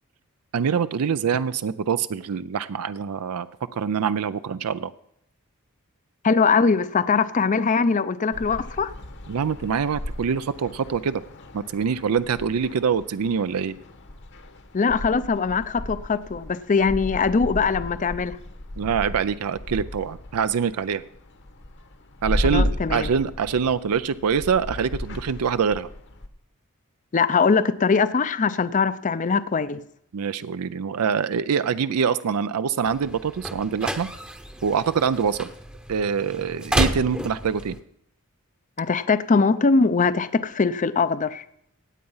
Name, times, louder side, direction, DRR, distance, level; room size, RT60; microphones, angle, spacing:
voice 1, 0.5-3.5 3.8-4.9 9.3-11.2 11.5-13.8 18.8-21.0 22.2-25.9 30.1-34.1 34.6-35.5 35.9-37.8, right 6 dB, 80° right, 14 dB, 0.4 m, -24 dB
voice 2, 6.2-8.9 14.7-18.4 22.4-23.1 27.1-29.8 38.8-41.4, left 4 dB, 35° left, 15 dB, 0.5 m, -21 dB
sound 1, 8.3-26.3, left 1 dB, 55° left, 1.1 m, -34 dB
sound 2, 32.8-37.8, equal, 5° right, 0.8 m, -31 dB
16.5 x 8.6 x 5.5 m, 0.72 s
head